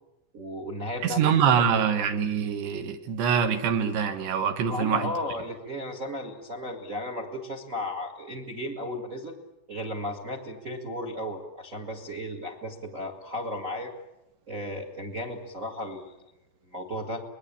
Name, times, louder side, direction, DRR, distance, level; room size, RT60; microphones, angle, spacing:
voice 1, 0.3-1.2 1.6-1.8 4.7-9.3 9.7-13.9 14.5-16.1 16.7-17.2, left 1 dB, 50° right, 0.9 m, -34 dB
voice 2, 1.0-5.1, right 7 dB, 75° right, 3.5 m, -24 dB
26.0 x 20.5 x 8.6 m
omnidirectional pair, 5.1 m